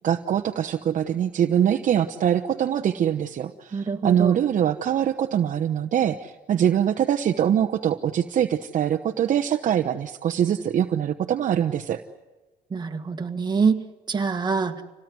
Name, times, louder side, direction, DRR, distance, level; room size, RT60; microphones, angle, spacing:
voice 1, 0.0-12.0, right 9 dB, 50° right, 5 dB, 1.0 m, -23 dB
voice 2, 3.7-4.4 12.7-14.8, right 5 dB, 25° right, 5 dB, 1.9 m, -25 dB
26.5 x 18.0 x 9.6 m, 1.2 s
cardioid pair, 110°, 17 cm